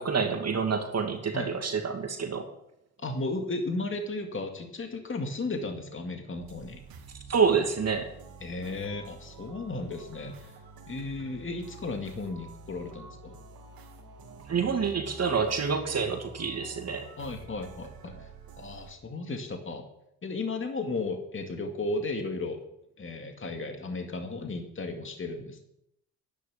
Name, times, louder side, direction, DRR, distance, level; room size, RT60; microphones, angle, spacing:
voice 1, 0.0-2.5 7.3-8.1 14.5-17.1, right 5 dB, 40° right, 4 dB, 2.4 m, -27 dB
voice 2, 3.0-6.8 8.4-10.5 10.9-13.4 17.2-18.1 18.6-19.8 20.2-22.6 23.0-25.6, left 3 dB, 30° left, 4 dB, 2.3 m, -34 dB
sound 1, 6.4-18.9, right 4 dB, 60° right, 2.7 m, -48 dB
11.0 x 10.0 x 7.2 m, 0.78 s
hypercardioid pair, 55°, 40 cm